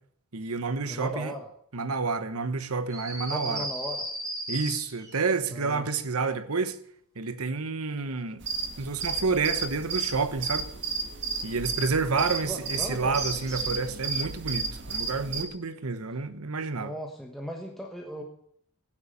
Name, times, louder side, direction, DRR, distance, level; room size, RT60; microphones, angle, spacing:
voice 1, 0.3-1.3 1.7-3.7 4.5-6.8 7.2-8.5 8.8-10.7 11.4-16.9, right 4 dB, 80° right, 1.1 m, -29 dB
voice 2, 0.9-1.5 3.3-4.0 5.5-5.9 12.1-13.2 16.8-18.2, equal, ahead, 1.2 m, -37 dB
sound 1, 2.9-5.2 13.1-13.9, right 1 dB, 15° right, 6.5 m, -35 dB
sound 2, 8.4-15.4, right 4 dB, 55° right, 1.7 m, -33 dB
13.0 x 9.9 x 6.8 m
head